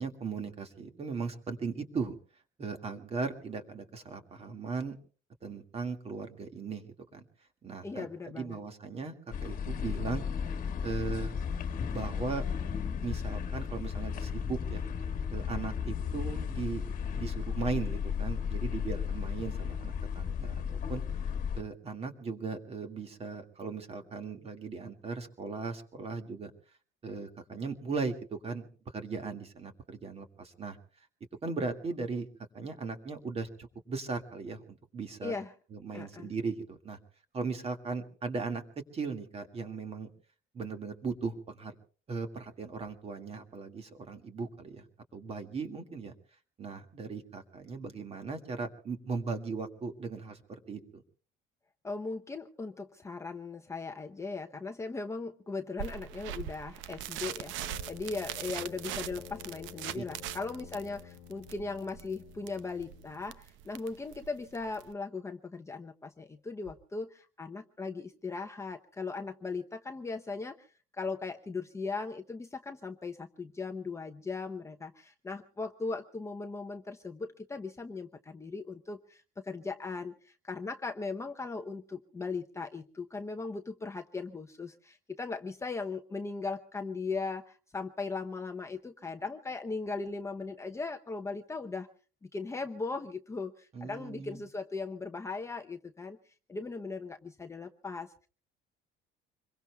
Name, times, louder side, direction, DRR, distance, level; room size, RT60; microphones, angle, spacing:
voice 1, 0.0-2.1 2.6-5.0 5.4-6.9 7.1-7.3 7.6-9.1 9.4-10.2 10.8-11.4 11.9-12.5 13.0-14.8 15.3-16.8 17.1-21.0 21.5-26.5 27.0-28.7 28.9-30.8 31.4-32.3 32.5-35.3 35.7-37.0 37.3-40.1 40.5-41.7 42.1-44.9 45.1-46.1 46.6-51.0 59.9-60.0 93.7-94.5, right 4 dB, 30° right, 7 dB, 2.0 m, -38 dB
voice 2, 7.8-8.6 35.2-35.5 35.9-36.3 51.8-70.7 71.0-91.9 92.2-98.1, left 4 dB, 15° left, 5 dB, 0.7 m, -38 dB
sound 1, 9.3-21.6, left 7 dB, 40° left, 1.5 m, -34 dB
sound 2, 55.8-64.9, right 11 dB, 75° right, 0.8 m, -41 dB
Brass instrument, 57.5-63.4, left 14 dB, 75° left, 1.2 m, -51 dB
26.5 x 22.5 x 2.3 m, 0.39 s
cardioid pair, 145°, 20 cm